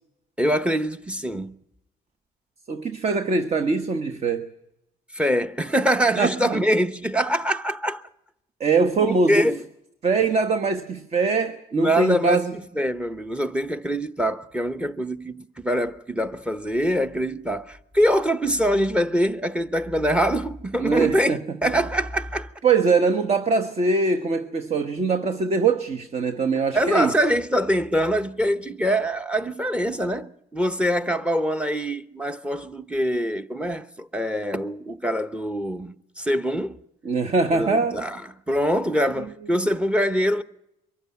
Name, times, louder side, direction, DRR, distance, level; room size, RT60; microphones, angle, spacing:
voice 1, 0.4-1.5 5.1-8.0 9.0-9.6 11.7-12.4 12.8-22.5 26.7-36.8 37.5-38.2 38.5-40.4, equal, 5° right, 1.0 m, -24 dB
voice 2, 2.7-4.5 6.2-6.6 8.6-9.5 10.0-12.6 20.8-21.7 22.6-27.1 37.0-38.0 39.5-39.7, right 4 dB, 40° right, 1.2 m, -22 dB
23.0 x 14.5 x 9.4 m
cardioid pair, 110°, 17 cm